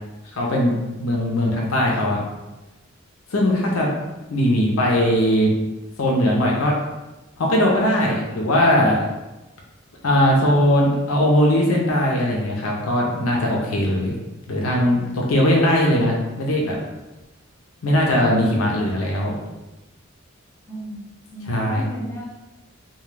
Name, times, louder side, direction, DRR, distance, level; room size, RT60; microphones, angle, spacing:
voice 1, 0.3-2.2 3.3-3.9 4.3-5.5 6.0-6.7 7.4-9.1 10.0-14.1 14.5-16.8 17.8-19.4 21.4-21.8, left 1 dB, 90° left, -2 dB, 0.6 m, -19 dB
voice 2, 20.7-22.2, equal, 15° left, -3 dB, 0.5 m, -34 dB
2.3 x 2.2 x 3.2 m, 1.1 s
head